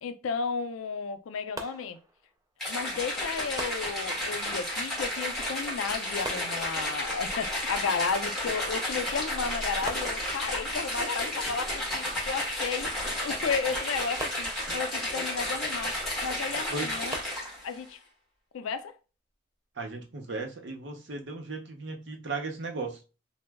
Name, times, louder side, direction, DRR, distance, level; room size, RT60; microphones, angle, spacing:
voice 1, 0.0-2.0 2.6-17.2 17.6-18.0 18.5-18.9, left 5 dB, 80° left, 0.4 m, -33 dB
sound 1, 1.6-2.6 3.6-4.6 6.2-7.2 8.9-9.0 9.3-9.4 9.9-10.9 14.2-15.2 17.1-18.0, right 2 dB, 15° right, 0.3 m, -43 dB
sound 2, 2.6-17.7, left 1 dB, ahead, 1.3 m, -32 dB
voice 2, 19.8-23.0, right 3 dB, 55° right, 0.7 m, -36 dB
2.9 x 2.0 x 3.4 m
head